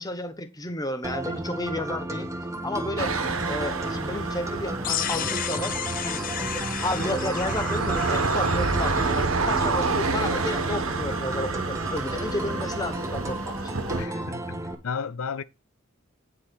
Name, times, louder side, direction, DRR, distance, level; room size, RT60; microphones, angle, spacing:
voice 1, 0.0-2.3 2.6-3.2 3.5-5.8 6.0-6.2 6.5-13.8, left 1 dB, 20° left, 1.1 m, -32 dB
sound 1, 1.0-14.7, right 1 dB, 15° right, 1.3 m, -33 dB
sound 2, 3.0-14.0, right 4 dB, 70° right, 1.3 m, -29 dB
sound 3, 4.8-9.7, left 10 dB, 40° left, 0.6 m, -33 dB
voice 2, 14.0-14.6 14.8-15.4, left 5 dB, 80° left, 0.5 m, -32 dB
9.9 x 5.0 x 6.1 m
head